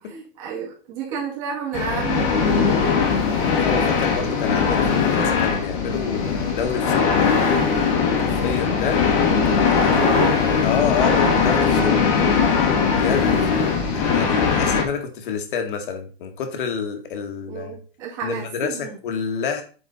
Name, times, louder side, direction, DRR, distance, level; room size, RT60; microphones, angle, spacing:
voice 1, 0.1-3.0 9.9-10.4 17.5-19.0, right 7 dB, 35° right, -5 dB, 2.3 m, -30 dB
sound 1, 1.7-14.8, left 5 dB, 35° left, 1.4 m, -20 dB
voice 2, 3.6-7.3 8.2-9.0 9.5-10.0 10.6-12.4 12.9-13.4 13.9-17.8 18.2-19.6, left 6 dB, 60° left, 6 dB, 1.8 m, -28 dB
8.5 x 4.3 x 4.1 m, 0.38 s
supercardioid pair, 175°, 30 cm